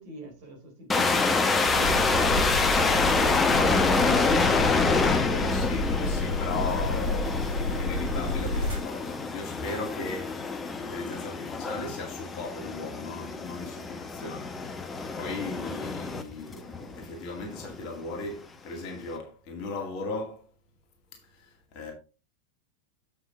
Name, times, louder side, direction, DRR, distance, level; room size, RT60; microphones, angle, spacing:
voice 1, 0.0-2.2, right 1 dB, 50° right, 3.8 m, -43 dB
sound 1, 0.9-17.1 17.4-17.7 18.3-18.4, left 4 dB, 15° left, 0.9 m, -27 dB
sound 2, 1.6-8.8, left 1 dB, 75° right, 3.3 m, -30 dB
voice 2, 5.0-20.4 21.3-21.9, left 3 dB, 40° left, 2.2 m, -37 dB
7.5 x 5.9 x 4.1 m
figure-of-eight pair, 90°, 0 cm